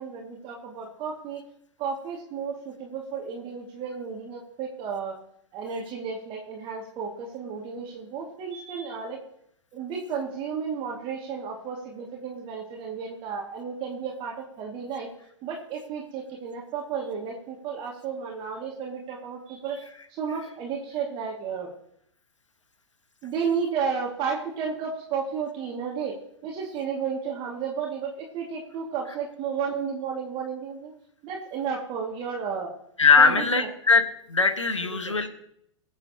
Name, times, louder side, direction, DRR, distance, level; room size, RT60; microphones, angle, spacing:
voice 1, 0.0-1.4 1.8-5.2 5.5-9.2 9.7-15.1 15.4-19.8 20.1-21.7 23.2-26.2 26.4-30.9 31.2-32.7 33.2-33.7 34.8-35.2, right 6 dB, 35° right, -1 dB, 2.1 m, -33 dB
voice 2, 33.0-35.3, left 4 dB, 90° left, 8 dB, 1.4 m, -20 dB
22.5 x 8.1 x 2.9 m, 0.70 s
figure-of-eight pair, 110°, 15 cm